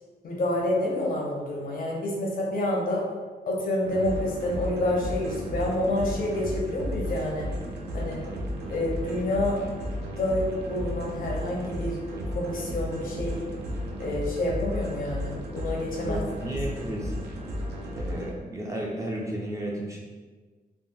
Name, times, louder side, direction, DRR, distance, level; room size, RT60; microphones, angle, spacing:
voice 1, 0.2-3.0 3.5-7.5 7.9-8.2 8.7-9.6 10.0-12.0 12.3-13.4 14.0-16.6, left 1 dB, 55° left, -2 dB, 0.7 m, -28 dB
sound 1, 3.8-18.3, equal, 80° right, 0.5 m, -34 dB
voice 2, 16.0-17.3 17.9-20.0, right 1 dB, 20° right, -3 dB, 0.4 m, -33 dB
3.5 x 2.2 x 2.6 m, 1.4 s
wide cardioid pair, 160°, 17 cm